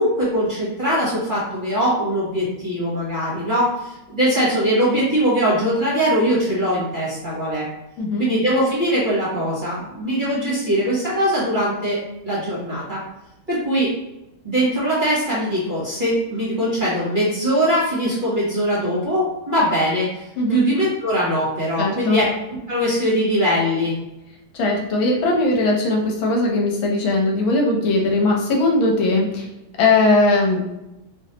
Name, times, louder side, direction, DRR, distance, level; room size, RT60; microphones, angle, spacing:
voice 1, 0.0-7.6 8.2-12.0 12.2-13.0 13.5-13.9 14.4-20.2 20.5-22.3 22.7-23.9, equal, 30° right, -8 dB, 1.0 m, -21 dB
voice 2, 21.8-22.2 24.5-29.4 29.8-30.6, left 2 dB, 75° left, 0 dB, 1.5 m, -19 dB
3.2 x 3.0 x 2.8 m, 0.94 s
omnidirectional pair, 2.2 m